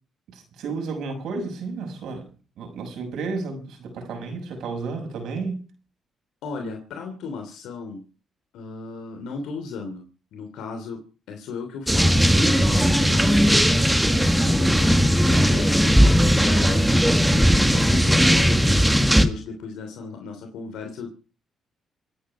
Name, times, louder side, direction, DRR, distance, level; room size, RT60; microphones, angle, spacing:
voice 1, 0.3-2.3 2.6-5.6, right 4 dB, 80° right, 6.2 m, -32 dB
voice 2, 6.4-8.0 8.5-10.0 10.3-11.0 11.3-16.9 17.6-21.1, left 4 dB, 85° left, 3.1 m, -35 dB
sound 1, 11.9-19.3, equal, 5° right, 1.8 m, -18 dB
27.0 x 9.5 x 5.0 m
cardioid pair, 90°, 0 cm